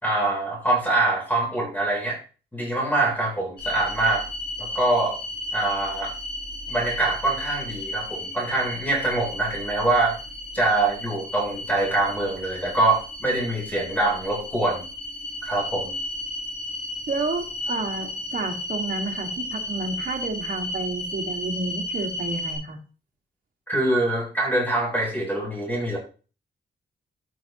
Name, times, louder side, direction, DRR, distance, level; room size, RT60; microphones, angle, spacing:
voice 1, 0.0-2.2 2.5-4.2 4.6-5.2 5.5-6.1 6.7-10.2 10.5-14.8 15.4-15.9 23.7-26.0, right 2 dB, 10° left, -2 dB, 3.6 m, -24 dB
sound 1, 3.6-22.6, left 1 dB, 60° left, 5.6 m, -34 dB
voice 2, 17.1-22.8, right 3 dB, 50° right, 2 dB, 1.9 m, -30 dB
14.0 x 6.0 x 3.0 m, 0.35 s
wide cardioid pair, 130°, 19 cm